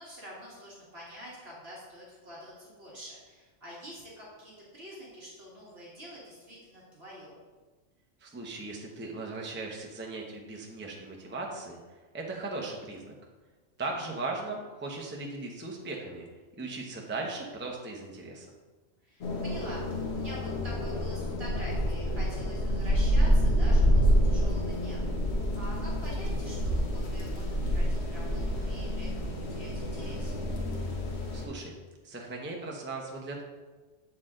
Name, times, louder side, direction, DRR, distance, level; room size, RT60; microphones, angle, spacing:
voice 1, 0.0-7.4 13.9-14.0 19.0-25.2 25.5-30.3, equal, 50° right, -6 dB, 1.9 m, -47 dB
voice 2, 8.2-11.8 12.1-13.1 13.8-16.3 16.6-18.5 31.3-31.7 32.0-33.4, right 3 dB, 10° right, -1 dB, 0.6 m, -38 dB
sound 1, 19.2-31.5, equal, 60° left, 1.2 m, -28 dB
7.6 x 4.4 x 3.7 m, 1.3 s
omnidirectional pair, 1.3 m